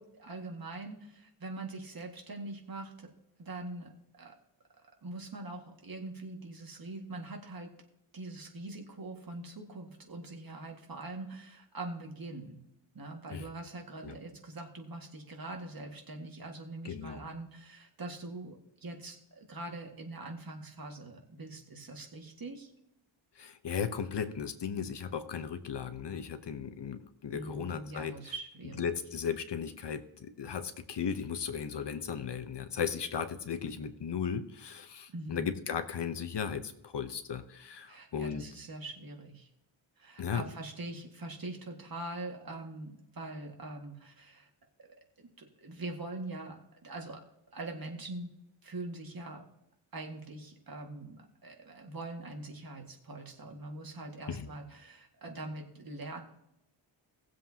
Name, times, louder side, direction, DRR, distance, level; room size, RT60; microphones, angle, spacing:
voice 1, 0.0-3.1 3.4-4.3 5.0-7.7 8.1-12.6 12.9-22.7 27.3-28.9 35.1-35.4 37.9-39.5 40.0-44.5 45.4-47.2 47.5-48.3 48.6-49.4 49.9-56.2, right 2 dB, 45° right, 2 dB, 2.0 m, -43 dB
voice 2, 16.8-17.2 23.4-28.1 28.8-38.4 40.2-40.5 54.3-54.5, left 7 dB, 60° left, 10 dB, 1.0 m, -36 dB
19.0 x 7.6 x 2.9 m, 0.83 s
wide cardioid pair, 110°, 47 cm